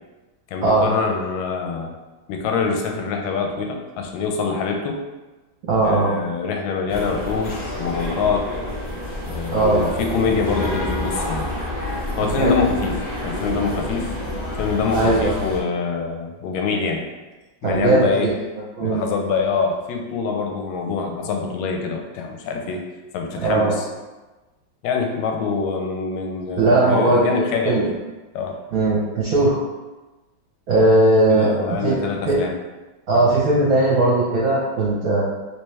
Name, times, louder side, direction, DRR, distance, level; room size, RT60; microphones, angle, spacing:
voice 1, 0.5-1.9 2.3-5.0 5.8-8.5 9.3-11.5 12.2-13.0 13.2-17.1 17.6-18.3 18.8-22.8 23.1-23.9 24.8-28.0 28.3-28.6 31.3-32.5 33.1-33.2, left 5 dB, 90° left, 3 dB, 1.4 m, -25 dB
voice 2, 5.7-6.1 9.5-9.8 12.4-12.5 14.9-15.4 17.6-18.3 18.8-19.0 23.4-23.7 26.5-27.9 28.7-29.6 30.7-31.9 32.3-32.4 33.1-35.2, right 2 dB, 60° right, -5 dB, 1.0 m, -18 dB
sound 1, 6.9-15.6, left 1 dB, 70° left, 0.4 m, -28 dB
3.4 x 3.0 x 3.1 m, 1.2 s
omnidirectional pair, 2.1 m